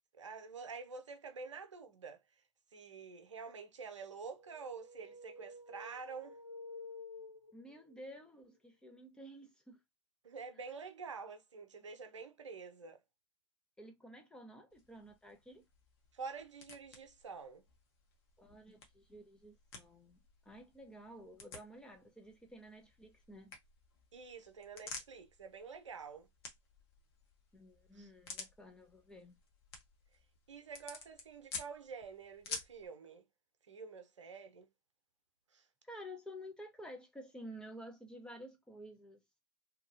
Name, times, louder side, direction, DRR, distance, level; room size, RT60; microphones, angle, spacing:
voice 1, 0.1-2.2 2.7-6.4 10.2-13.0 16.1-17.6 24.1-26.3 27.9-28.1 30.5-33.2 33.7-34.7 35.5-35.7, right 5 dB, 80° right, 0.7 m, -48 dB
sound 1, 4.3-8.0, left 3 dB, 80° left, 1.8 m, -51 dB
voice 2, 7.5-9.8 13.8-15.7 18.4-20.2 20.5-23.5 27.5-29.4 35.8-39.2, equal, 5° left, 0.6 m, -52 dB
sound 2, 14.7-32.9, left 4 dB, 55° left, 1.0 m, -52 dB
3.0 x 2.2 x 2.5 m
figure-of-eight pair, 105°, 15 cm